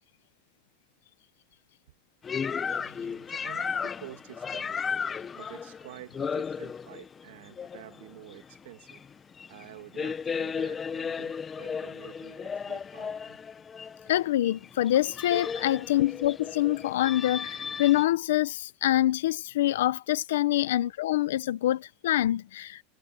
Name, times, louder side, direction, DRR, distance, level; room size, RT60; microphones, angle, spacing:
sound 1, 2.2-18.0, left 6 dB, 20° left, 1.2 m, -35 dB
voice 1, 2.8-4.8 5.3-9.0 9.5-13.4 15.7-16.1 20.6-20.8, right 15 dB, 85° right, 2.3 m, -49 dB
voice 2, 14.1-22.8, left 14 dB, 85° left, 0.8 m, -25 dB
supercardioid pair, 135°, 0 cm